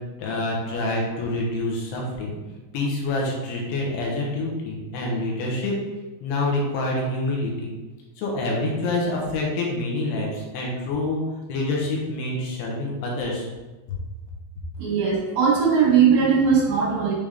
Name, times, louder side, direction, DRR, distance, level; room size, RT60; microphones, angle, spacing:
voice 1, 0.2-2.4 2.7-5.7 6.2-7.7 8.2-11.2 11.5-13.5, left 2 dB, 75° left, -2 dB, 3.2 m, -26 dB
voice 2, 14.8-17.1, right 6 dB, 85° right, -5 dB, 4.3 m, -19 dB
9.1 x 3.5 x 3.5 m, 1.2 s
omnidirectional pair, 4.9 m